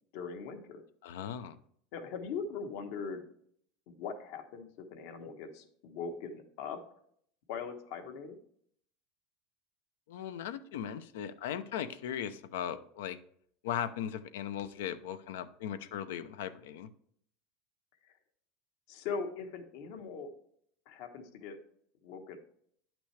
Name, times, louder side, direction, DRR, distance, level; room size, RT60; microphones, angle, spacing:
voice 1, 0.1-0.8 1.9-3.2 3.9-6.8 7.5-8.4 18.0-18.1 18.9-20.3 20.9-21.6 22.0-22.4, left 5 dB, 65° left, 6 dB, 1.2 m, -40 dB
voice 2, 1.0-1.6 10.1-13.2 13.6-16.9, left 9 dB, 85° left, 12 dB, 0.6 m, -38 dB
10.0 x 6.0 x 3.3 m, 0.64 s
supercardioid pair, 140°, 0 cm